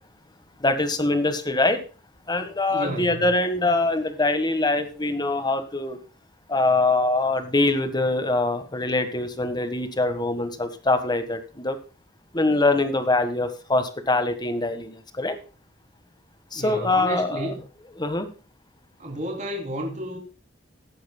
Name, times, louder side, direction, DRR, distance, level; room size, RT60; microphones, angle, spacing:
voice 1, 0.6-1.8 2.3-6.0 6.5-11.8 12.3-15.4 16.5-17.5 18.0-18.3, left 2 dB, 20° left, 9 dB, 1.6 m, -23 dB
voice 2, 2.7-3.3 16.5-17.6 19.0-20.2, equal, 40° right, 1 dB, 3.3 m, -32 dB
18.0 x 9.3 x 2.3 m, 0.35 s
head